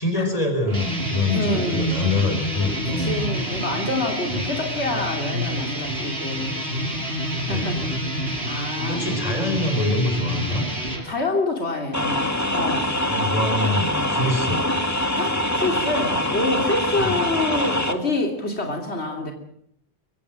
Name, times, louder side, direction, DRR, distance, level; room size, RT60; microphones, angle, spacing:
voice 1, 0.0-3.3 7.5-8.4 8.9-10.6 13.1-14.6 17.0-17.2, left 2 dB, 35° left, 5 dB, 5.4 m, -25 dB
sound 1, 0.6-11.0, equal, 70° right, 6.1 m, -28 dB
voice 2, 1.3-2.0 2.8-6.9 7.4-7.8 8.1-9.6 11.0-12.9 13.2-13.4 15.2-19.3, left 2 dB, 85° left, 3 dB, 3.3 m, -27 dB
sound 2, 11.9-17.9, left 1 dB, 15° left, 2.0 m, -24 dB
23.0 x 17.5 x 7.6 m, 0.72 s
omnidirectional pair, 1.1 m